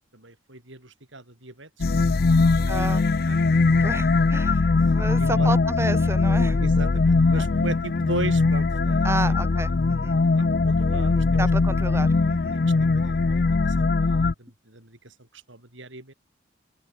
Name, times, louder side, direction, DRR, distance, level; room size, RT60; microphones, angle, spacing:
voice 1, 0.1-3.4 5.2-5.6 6.6-9.4 10.1-11.4 12.5-12.6 12.9-16.1, right 2 dB, 85° right, 7.5 m, -38 dB
sound 1, 1.8-14.3, left 3 dB, 50° left, 0.5 m, -21 dB
voice 2, 2.7-3.0 3.8-6.6 7.4-7.5 9.0-10.2 11.4-12.6, right 1 dB, 15° right, 4.4 m, -31 dB
open air
head